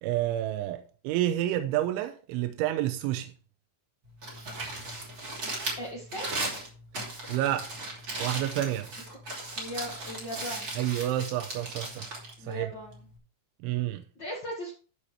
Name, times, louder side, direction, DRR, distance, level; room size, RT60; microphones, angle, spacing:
voice 1, 0.0-3.3 7.3-7.7 8.2-8.9 10.8-12.1 12.4-12.7 13.6-14.0, right 13 dB, 85° right, 2.9 m, -29 dB
Crumpling crinkling, 4.1-13.2, right 2 dB, 30° right, 2.8 m, -37 dB
voice 2, 5.8-6.3 9.5-10.7 12.4-13.0 14.2-14.7, equal, 75° left, 1.0 m, -38 dB
12.0 x 7.0 x 3.4 m
omnidirectional pair, 5.7 m